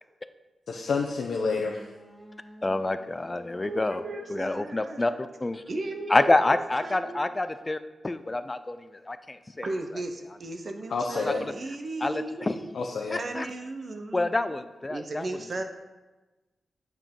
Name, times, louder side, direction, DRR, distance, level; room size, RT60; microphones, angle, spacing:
voice 1, 0.7-1.8 10.9-11.4 12.7-13.2, left 4 dB, 75° left, 0 dB, 0.7 m, -29 dB
sound 1, 1.6-7.5, left 1 dB, 10° right, 1.7 m, -52 dB
voice 2, 2.6-4.0 4.3-5.6 6.1-7.8 8.0-9.7 12.0-12.6 13.1-13.5 14.1-15.3, left 2 dB, 25° left, 11 dB, 0.4 m, -27 dB
voice 3, 3.6-5.2 5.7-6.4 6.8-7.3 9.6-12.7 13.2-14.5 14.9-15.6, right 2 dB, 55° right, 5 dB, 0.9 m, -36 dB
7.7 x 4.6 x 5.5 m, 1.2 s
cardioid pair, 80°, 0 cm